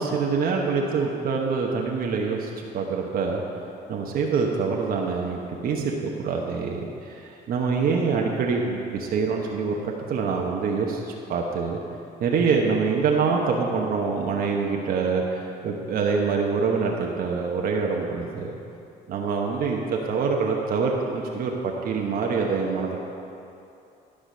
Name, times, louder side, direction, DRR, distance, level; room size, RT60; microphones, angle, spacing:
voice 1, 0.0-3.4 3.9-11.8 12.2-18.5 19.1-23.0, right 5 dB, 60° right, 0 dB, 1.1 m, -25 dB
12.5 x 5.0 x 6.2 m, 2.7 s
cardioid pair, 110°, 17 cm